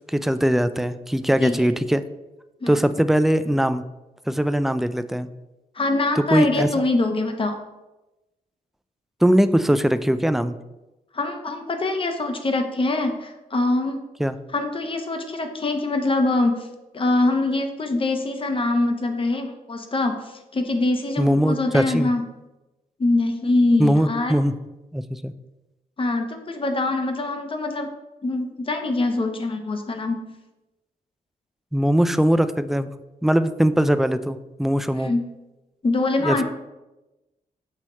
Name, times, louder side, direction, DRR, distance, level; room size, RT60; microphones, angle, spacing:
voice 1, 0.1-2.0 2.7-3.8 4.3-5.3 6.2-6.7 9.2-10.5 14.2-14.3 21.2-22.1 23.8-24.5 24.9-25.3 31.7-32.9 33.2-35.1 36.2-36.4, equal, ahead, 11 dB, 0.3 m, -20 dB
voice 2, 5.7-7.6 11.1-14.0 14.5-16.7 16.9-22.2 23.0-24.4 26.0-27.9 28.2-30.2 34.9-35.3 35.8-36.4, left 2 dB, 35° left, 5 dB, 0.9 m, -24 dB
6.3 x 2.9 x 5.4 m, 1.0 s
cardioid pair, 80°, 15 cm